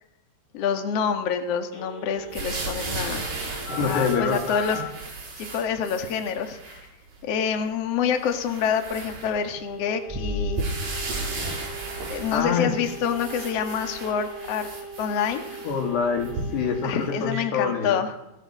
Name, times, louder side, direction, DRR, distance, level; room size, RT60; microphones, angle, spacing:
voice 1, 0.5-3.3 3.8-4.8 5.4-6.8 7.2-10.8 12.1-14.7 15.0-15.6 16.8-18.2, left 7 dB, 45° left, 6 dB, 2.4 m, -27 dB
Telephone, 1.7-4.8 9.3-17.4, right 1 dB, 65° left, 8.6 m, -40 dB
sound 1, 2.3-6.9 7.5-7.6 8.1-9.7 10.6-16.7 17.3-17.4, right 3 dB, 80° right, 8.5 m, -35 dB
voice 2, 3.7-4.4 4.7-4.9 12.3-12.8 15.6-18.0, left 6 dB, 85° left, 4 dB, 5.1 m, -26 dB
sound 2, 10.1-12.8 13.1-13.2, left 1 dB, 15° right, 5.7 m, -35 dB
23.0 x 17.5 x 6.3 m, 0.92 s
omnidirectional pair, 4.7 m